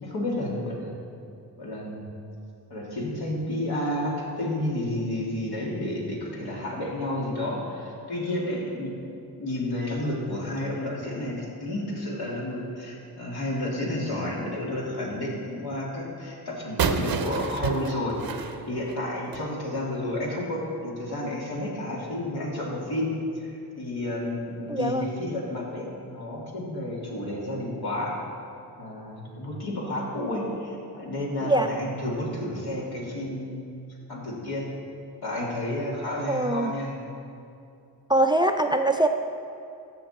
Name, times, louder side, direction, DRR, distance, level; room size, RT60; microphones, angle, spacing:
voice 1, 0.0-0.9 1.6-2.0 2.7-9.1 9.4-28.2 28.8-33.6 34.1-34.7 35.2-37.0, left 1 dB, 75° left, -4 dB, 2.5 m, -31 dB
sound 1, 16.8-19.5, right 6 dB, 65° right, 0.7 m, -29 dB
voice 2, 24.7-25.1 31.4-31.7 36.3-36.7 38.1-39.1, right 1 dB, 10° right, 7 dB, 0.4 m, -22 dB
14.5 x 6.0 x 4.2 m, 2.6 s
cardioid pair, 60°, 39 cm